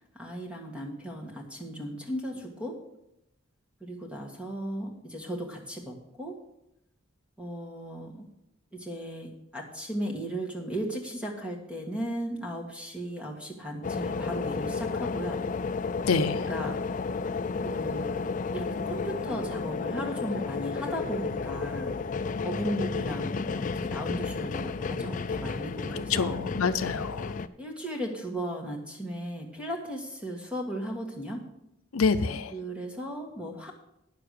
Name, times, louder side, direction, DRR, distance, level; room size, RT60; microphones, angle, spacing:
voice 1, 0.1-2.8 3.8-6.4 7.4-8.3 8.7-15.4 16.1-16.8 17.6-22.0 22.4-26.4 27.6-31.4 32.5-33.7, equal, 5° right, 2 dB, 1.6 m, -36 dB
sound 1, 13.8-27.5, left 4 dB, 40° left, 0.4 m, -32 dB
voice 2, 16.1-16.4 26.1-27.4 31.9-32.5, left 5 dB, 85° left, 10 dB, 0.6 m, -26 dB
9.9 x 6.9 x 6.6 m, 0.84 s
head